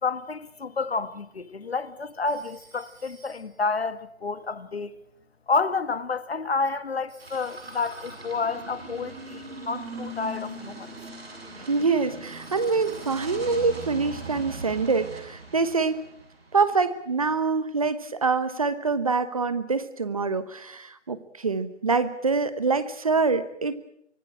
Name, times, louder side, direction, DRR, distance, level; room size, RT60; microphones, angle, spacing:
voice 1, 0.0-4.9 5.5-10.9, left 4 dB, 55° left, 1.7 m, -29 dB
Telephone, 2.3-3.7 7.1-8.5 12.2-13.6, right 3 dB, 10° right, 3.5 m, -55 dB
sound 1, 7.2-16.7, right 2 dB, 55° right, 7.4 m, -40 dB
voice 2, 11.6-16.0 16.5-23.8, right 4 dB, 30° right, 1.1 m, -25 dB
25.0 x 17.5 x 8.8 m
figure-of-eight pair, 165°, 36 cm